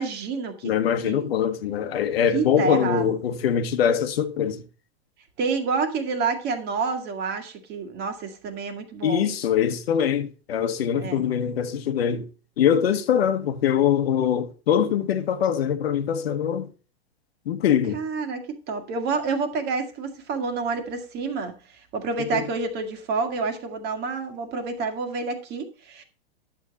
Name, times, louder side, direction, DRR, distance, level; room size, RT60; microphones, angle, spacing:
voice 1, 0.0-0.7 1.0-1.3 2.3-3.1 5.4-9.3 11.0-11.2 17.9-21.5 21.9-26.0, right 4 dB, 30° right, 1.7 m, -28 dB
voice 2, 0.6-4.6 9.0-12.3 12.6-16.7 17.5-18.0 22.3-22.4, left 8 dB, 70° left, 1.2 m, -23 dB
10.5 x 7.1 x 4.0 m
hypercardioid pair, 130°, 32 cm